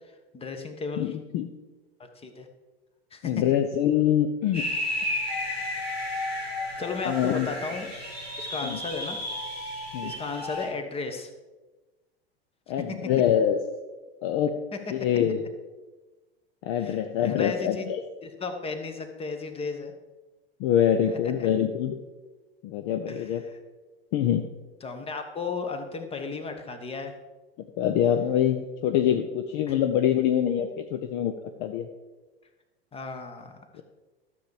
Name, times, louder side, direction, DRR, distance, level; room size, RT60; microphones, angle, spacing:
voice 1, 0.3-1.2 2.0-2.5 3.1-3.4 6.8-7.9 8.4-9.2 10.0-11.3 14.7-14.8 16.7-17.0 17.2-17.9 18.2-19.9 21.1-21.5 23.1-23.6 24.8-27.1 29.7-29.8 32.9-33.8, left 4 dB, 20° left, 6 dB, 1.4 m, -35 dB
voice 2, 1.0-1.5 3.2-4.7 7.0-7.5 8.6-8.8 9.9-10.1 12.7-13.6 14.2-14.5 14.9-15.4 16.7-18.0 20.6-22.0 22.6-23.4 24.1-24.4 27.8-31.3 31.6-31.9 33.8-33.9, left 10 dB, 45° left, 6 dB, 0.8 m, -24 dB
sound 1, 4.5-10.6, left 1 dB, 90° left, 3.0 m, -32 dB
13.0 x 7.2 x 4.9 m, 1.2 s
figure-of-eight pair, 85°, 30 cm